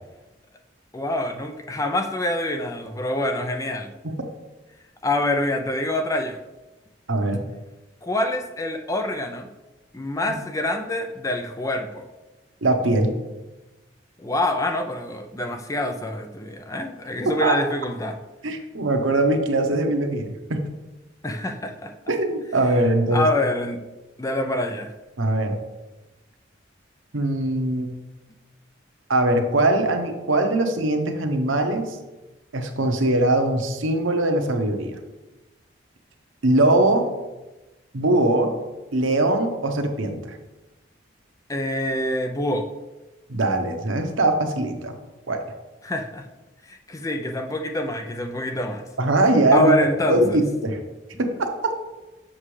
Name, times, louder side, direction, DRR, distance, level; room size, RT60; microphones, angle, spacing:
voice 1, 0.9-3.9 5.0-6.4 8.0-9.5 9.9-12.0 14.2-18.2 21.2-21.9 23.1-23.8 24.2-24.9 41.5-42.7 45.8-46.3 46.7-48.8 49.5-50.4, left 1 dB, 15° left, 5 dB, 0.4 m, -26 dB
voice 2, 7.1-7.4 12.6-13.1 17.2-17.6 18.4-20.6 22.1-23.3 25.2-25.6 27.1-27.9 29.1-32.0 32.5-34.9 36.4-37.0 37.9-38.6 38.9-40.4 43.3-44.9 45.3-45.4 49.0-49.7 50.1-50.8 51.2-51.5, right 2 dB, 85° right, 5 dB, 0.9 m, -21 dB
7.4 x 6.1 x 3.3 m, 1.1 s
head